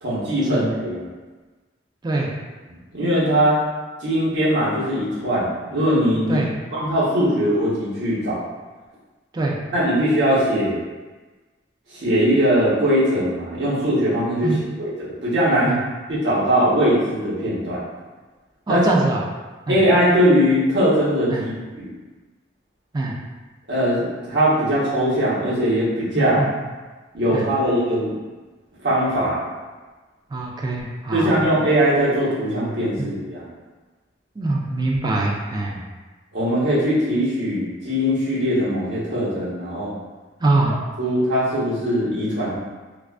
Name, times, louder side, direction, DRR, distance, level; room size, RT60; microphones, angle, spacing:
voice 1, 0.0-1.1 2.9-3.6 4.0-6.4 6.7-8.4 9.7-10.8 11.9-15.8 16.1-17.8 18.7-18.9 19.7-21.9 23.7-26.4 27.1-28.1 28.8-29.5 31.1-33.5 36.3-39.9 41.0-42.5, equal, 70° right, -9 dB, 0.9 m, -20 dB
voice 2, 18.7-19.2 19.7-19.8 21.3-21.4 22.9-23.2 26.1-26.5 27.3-27.5 30.3-31.3 33.0-33.1 34.4-35.8 40.4-40.8, right 2 dB, 25° right, -2 dB, 0.3 m, -23 dB
2.3 x 2.2 x 2.4 m, 1.3 s
head